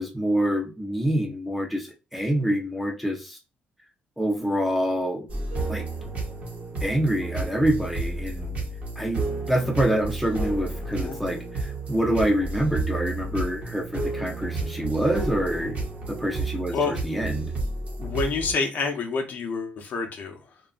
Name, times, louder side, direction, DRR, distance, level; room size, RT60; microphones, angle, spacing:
voice 1, 0.0-3.4 4.2-5.3 5.7-5.9 6.8-8.5 9.0-15.8 16.1-17.5, right 1 dB, ahead, 0.6 m, -26 dB
sound 1, 5.3-18.5, right 2 dB, 45° right, 0.9 m, -31 dB
voice 2, 18.0-20.6, left 4 dB, 55° left, 0.6 m, -28 dB
2.8 x 2.3 x 2.4 m
cardioid pair, 135°, 3 cm